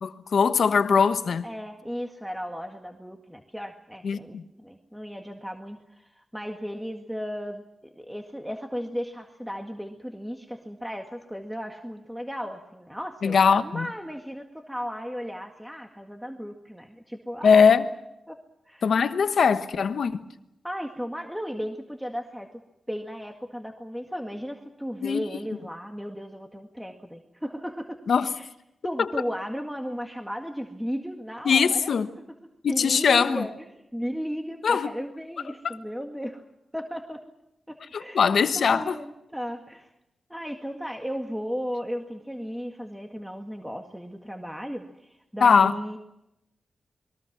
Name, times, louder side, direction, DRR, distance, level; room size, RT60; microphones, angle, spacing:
voice 1, 0.0-1.4 4.0-4.4 13.2-13.9 17.4-17.9 18.8-20.2 25.0-25.2 28.1-28.3 31.4-32.1 32.6-33.4 34.6-34.9 35.6-35.7 37.9-39.0 45.4-45.7, left 6 dB, 75° left, 1.2 m, -21 dB
voice 2, 1.4-7.6 8.0-17.7 18.3-18.4 18.7-18.9 20.6-22.5 22.9-28.0 28.4-28.5 28.8-31.9 32.7-36.4 36.7-37.2 37.7-39.9 40.3-46.0, equal, 5° right, 2.0 m, -35 dB
28.0 x 22.0 x 6.1 m
cardioid pair, 70°, 0 cm